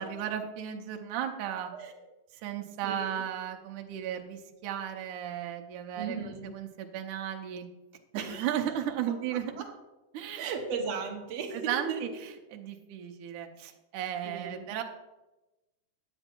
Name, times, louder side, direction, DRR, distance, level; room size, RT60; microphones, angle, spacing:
voice 1, 0.0-1.7 2.4-7.7 8.1-9.5 10.1-10.4 11.7-12.1 12.5-14.8, right 10 dB, 80° right, 4 dB, 2.3 m, -35 dB
voice 2, 2.8-3.2 6.0-6.5 8.1-8.5 9.1-9.7 10.4-12.1 14.3-14.7, right 5 dB, 60° right, 2 dB, 2.1 m, -37 dB
10.0 x 7.9 x 4.4 m, 1.0 s
omnidirectional pair, 3.6 m